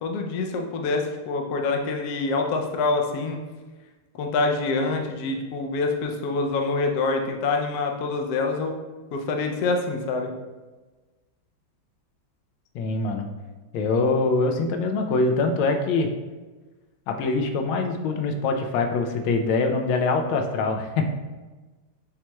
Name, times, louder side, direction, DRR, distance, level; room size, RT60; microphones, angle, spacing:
voice 1, 0.0-3.4 4.1-8.8 9.1-10.3, left 3 dB, 70° left, 2 dB, 0.9 m, -26 dB
voice 2, 12.7-13.3 13.7-16.1 17.1-21.1, left 3 dB, 90° left, 4 dB, 1.4 m, -24 dB
7.3 x 2.9 x 2.2 m, 1.2 s
omnidirectional pair, 2.2 m